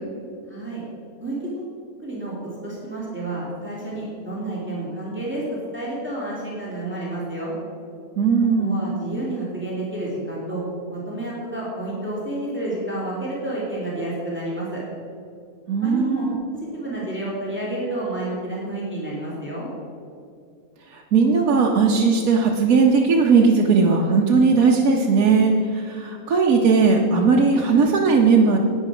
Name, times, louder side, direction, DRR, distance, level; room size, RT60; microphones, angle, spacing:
voice 1, 0.5-0.8 1.2-1.4 2.0-2.3 2.6-7.5 8.6-10.6 10.9-14.8 15.8-16.3 16.5-19.7, right 1 dB, 5° right, -6 dB, 2.7 m, -30 dB
voice 2, 8.2-8.9 15.7-16.4 20.9-28.6, right 4 dB, 70° right, -1 dB, 1.3 m, -18 dB
11.0 x 9.2 x 4.9 m, 2.4 s
omnidirectional pair, 1.6 m